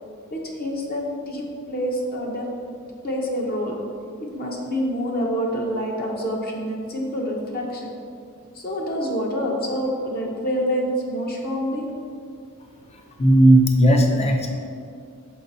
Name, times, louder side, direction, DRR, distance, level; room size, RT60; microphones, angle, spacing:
voice 1, 0.3-2.5 3.0-3.8 4.3-7.9 8.5-11.9, equal, 45° left, -1 dB, 1.0 m, -27 dB
voice 2, 13.2-14.5, right 1 dB, 30° left, 3 dB, 0.6 m, -15 dB
5.7 x 5.3 x 4.0 m, 2.3 s
head